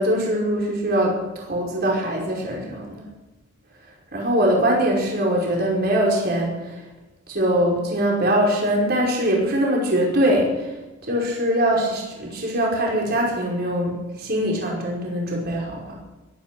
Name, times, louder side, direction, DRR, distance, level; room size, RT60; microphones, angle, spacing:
voice 1, 0.0-3.0 4.1-6.8 7.3-10.7 11.1-15.9, equal, 50° right, -2 dB, 4.9 m, -22 dB
21.5 x 10.0 x 6.1 m, 1.1 s
head